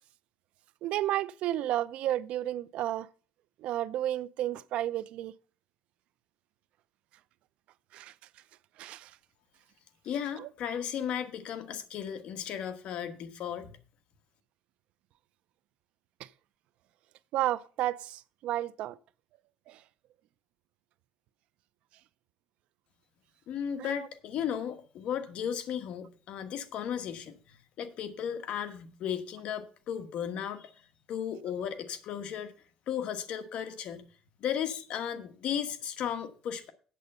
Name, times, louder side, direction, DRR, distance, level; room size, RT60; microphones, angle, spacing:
voice 1, 0.8-3.1 3.6-5.3 7.9-8.1 8.8-9.1 17.3-19.0 19.7-19.8 23.8-24.0, right 13 dB, 70° right, 0.5 m, -32 dB
voice 2, 10.0-13.7 23.5-30.7 31.1-32.5 32.9-34.1 34.4-36.7, left 8 dB, 60° left, 1.3 m, -35 dB
8.4 x 7.8 x 5.4 m
cardioid pair, 130°, 2 cm